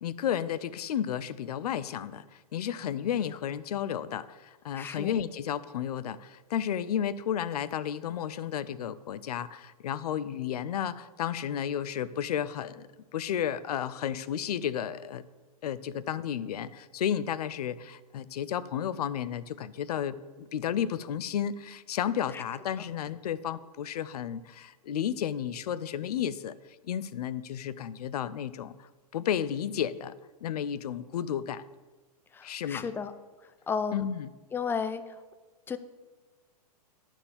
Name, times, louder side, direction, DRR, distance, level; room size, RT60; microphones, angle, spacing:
voice 1, 0.0-12.9 13.1-15.2 15.6-26.5 26.8-30.1 30.4-31.6 32.4-32.9 33.9-34.3, left 9 dB, 75° left, 16 dB, 0.6 m, -32 dB
voice 2, 4.7-5.1 22.3-22.4 32.3-33.1 33.7-34.1 34.5-35.0 35.7-35.8, left 6 dB, 10° left, 11 dB, 0.4 m, -33 dB
11.5 x 4.5 x 7.1 m, 1.3 s
hypercardioid pair, 130°, 20 cm